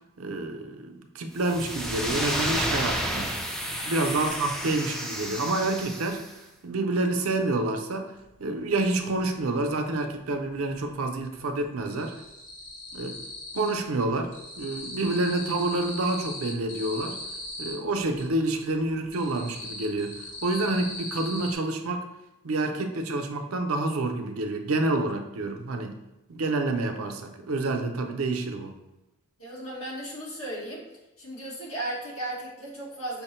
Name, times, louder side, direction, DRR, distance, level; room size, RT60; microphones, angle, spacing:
voice 1, 0.2-3.3 3.8-6.2 6.6-8.1 8.4-12.1 12.9-13.2 13.5-17.2 17.6-20.2 20.4-22.1 22.4-26.0 26.3-28.7, right 2 dB, 75° right, 5 dB, 0.6 m, -28 dB
sound 1, 1.4-6.3, equal, ahead, 0.4 m, -31 dB
sound 2, 8.3-8.4 8.7-10.0 10.2-10.9 11.2-13.9 14.1-18.3 18.7-21.5, left 1 dB, 40° left, 1.0 m, -39 dB
voice 2, 29.4-30.8 31.2-33.2, right 1 dB, 75° left, -4 dB, 1.6 m, -35 dB
5.7 x 2.1 x 4.2 m, 0.94 s
head